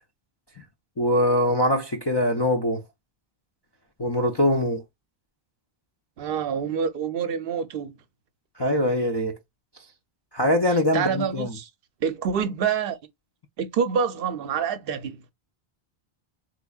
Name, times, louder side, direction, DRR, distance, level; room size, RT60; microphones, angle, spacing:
voice 1, 1.0-2.8 4.0-4.8 8.6-9.4 10.3-11.5, left 1 dB, 40° left, 0.3 m, -22 dB
voice 2, 6.2-8.0 10.9-11.7 12.0-13.0 13.6-15.2, right 7 dB, 70° right, 0.7 m, -27 dB
3.5 x 3.1 x 2.3 m
omnidirectional pair, 1.0 m